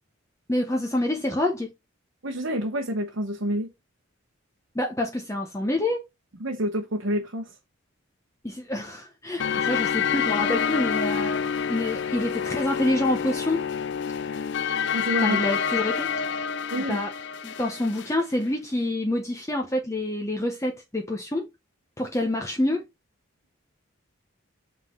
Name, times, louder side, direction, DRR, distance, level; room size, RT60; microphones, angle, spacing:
voice 1, 0.5-1.7 4.7-6.0 8.4-11.4 11.7-13.6 15.2-16.1 16.7-17.1 17.4-21.5 22.0-22.8, left 1 dB, 15° left, 0.9 m, -27 dB
voice 2, 2.2-3.7 6.4-7.5 14.9-15.4 16.7-17.0, equal, 60° right, 1.1 m, -28 dB
sound 1, 9.4-18.2, left 7 dB, 55° left, 0.5 m, -27 dB
8.0 x 3.8 x 4.4 m
head